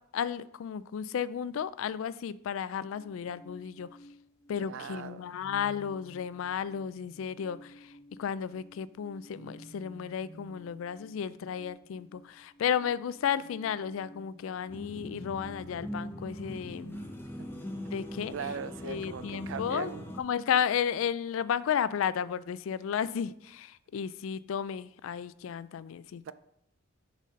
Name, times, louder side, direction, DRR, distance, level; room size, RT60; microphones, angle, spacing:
voice 1, 0.1-3.9 4.5-7.9 8.2-17.0 17.9-18.3 18.8-19.9 20.2-26.3, left 8 dB, 70° left, 17 dB, 0.3 m, -33 dB
sound 1, 2.9-20.7, equal, 35° left, 1.0 m, -54 dB
voice 2, 4.6-5.2 17.8-17.9 18.3-20.1 26.3-26.4, right 7 dB, 65° right, 14 dB, 0.4 m, -39 dB
sound 2, 14.7-20.2, equal, 10° left, 0.7 m, -41 dB
6.4 x 4.1 x 5.1 m, 0.75 s
head